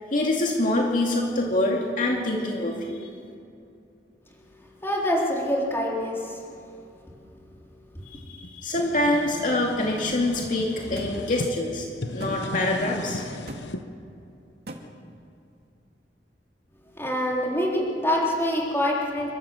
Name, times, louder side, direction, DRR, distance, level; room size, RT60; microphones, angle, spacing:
voice 1, 0.1-3.1 8.1-11.9 12.1-13.2, left 1 dB, 50° left, -1 dB, 2.5 m, -25 dB
voice 2, 4.8-6.4 7.9-8.0 17.0-19.3, equal, 15° left, -3 dB, 3.9 m, -25 dB
sound 1, 8.4-11.5 11.9-13.8, left 1 dB, 80° left, 1.1 m, -36 dB
sound 2, 11.0-11.1 12.2-12.4 13.5-13.6 14.7-14.8, right 1 dB, 65° right, 2.3 m, -37 dB
28.5 x 13.5 x 7.8 m, 2.6 s
head